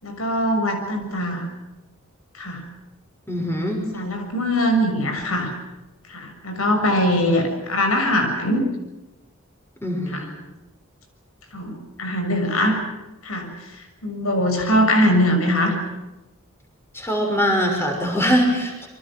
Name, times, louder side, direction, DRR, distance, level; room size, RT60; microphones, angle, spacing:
voice 1, 0.0-1.4 2.3-2.6 3.9-5.5 6.1-8.7 10.1-10.2 11.5-12.8 13.2-13.4 14.0-15.7, equal, 80° left, 5 dB, 6.6 m, -21 dB
voice 2, 3.3-3.8 9.8-10.3 16.9-18.9, equal, 10° left, 2 dB, 6.0 m, -22 dB
28.5 x 24.0 x 6.2 m, 1.0 s
head